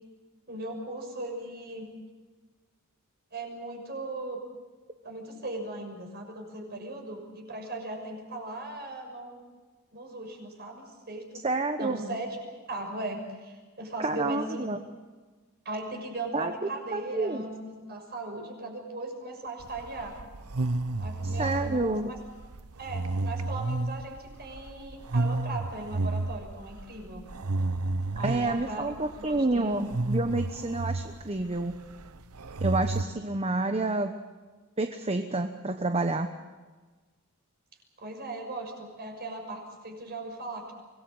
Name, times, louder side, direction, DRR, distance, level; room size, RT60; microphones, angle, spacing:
voice 1, 0.5-1.9 3.3-4.4 5.0-9.4 9.9-11.5 11.8-12.4 12.7-14.8 15.6-20.2 21.0-22.2 22.8-27.3 28.1-29.8 38.0-40.7, right 2 dB, 45° right, 3 dB, 6.3 m, -38 dB
voice 2, 11.4-12.1 14.0-14.8 16.3-17.4 21.2-22.1 28.2-31.7 32.6-34.1 34.8-36.3, right 2 dB, 30° right, 6 dB, 1.1 m, -29 dB
sound 1, 19.6-33.0, right 2 dB, 90° right, 0.9 m, -32 dB
24.5 x 20.0 x 8.0 m, 1.3 s
head